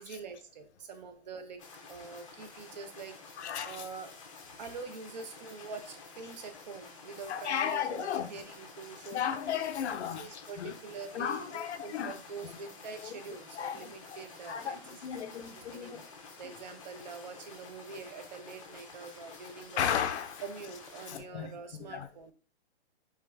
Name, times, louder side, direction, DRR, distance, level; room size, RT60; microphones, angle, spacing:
voice 1, 0.0-1.6 1.9-3.2 3.6-4.1 4.6-9.4 10.2-15.0 15.5-16.0 16.4-19.8 20.4-22.3, right 5 dB, 40° right, 0.5 m, -45 dB
sound 1, 1.6-21.2, left 4 dB, 30° left, 0.5 m, -51 dB
voice 2, 3.4-3.8 7.3-8.3 9.1-10.7 11.1-12.1 12.4-12.5 13.6-14.2 14.4-16.0 19.8-20.4 21.1-21.5 21.9-22.1, left 8 dB, 85° left, 0.5 m, -34 dB
3.3 x 3.2 x 2.2 m
hypercardioid pair, 165°, 33 cm